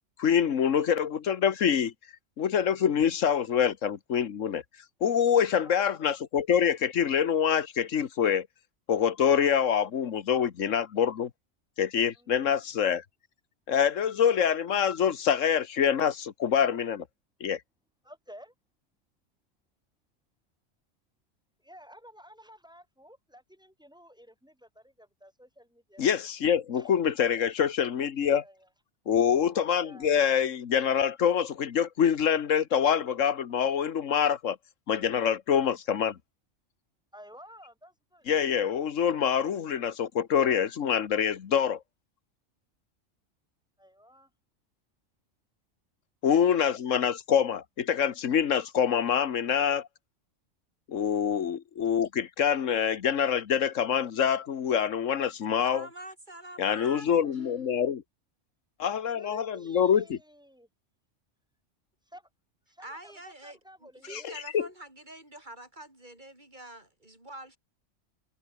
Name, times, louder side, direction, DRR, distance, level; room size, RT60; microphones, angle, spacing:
voice 1, 0.2-1.9 2.4-4.6 5.0-8.5 8.9-11.3 11.8-13.0 13.7-17.0 17.4-17.6 26.0-28.4 29.1-34.6 34.9-36.2 38.3-41.8 46.2-49.9 50.9-55.9 56.6-58.0 58.8-60.2 64.1-64.7, left 8 dB, 85° left, 1.5 m, -25 dB
voice 2, 5.5-5.9 12.2-12.4 18.0-18.5 21.6-26.1 26.7-26.9 28.3-28.7 29.8-30.1 37.1-38.3 43.8-44.3 47.0-47.5 59.1-60.7 62.1-62.3 62.7-64.3, equal, 5° right, 5.8 m, -52 dB
voice 3, 55.6-57.5 62.8-67.6, right 1 dB, 40° right, 5.6 m, -46 dB
omnidirectional pair, 1.3 m